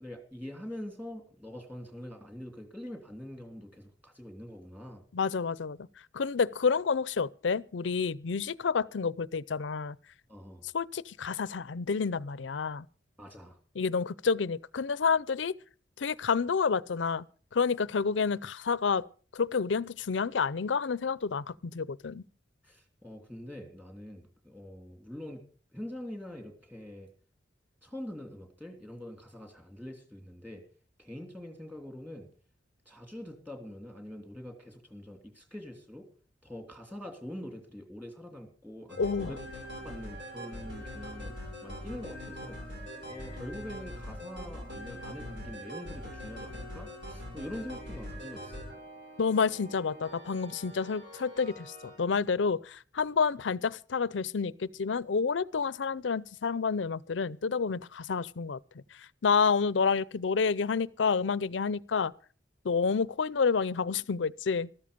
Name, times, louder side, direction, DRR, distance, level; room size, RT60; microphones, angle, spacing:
voice 1, 0.0-5.0 10.3-10.6 13.2-13.6 22.6-25.4 25.7-27.1 27.8-30.6 31.0-32.3 32.8-36.1 36.4-39.4 39.8-41.3 41.6-42.6 43.1-48.6, left 1 dB, 10° right, 2.9 m, -44 dB
voice 2, 5.1-5.8 6.1-10.0 10.7-12.8 13.8-15.5 16.0-17.2 17.5-19.0 19.3-22.2 39.0-39.3 49.2-58.6 59.2-62.1 62.6-64.7, left 5 dB, 85° left, 0.6 m, -29 dB
sound 1, 38.9-52.0, equal, 70° right, 6.5 m, -43 dB
14.0 x 13.5 x 5.2 m
head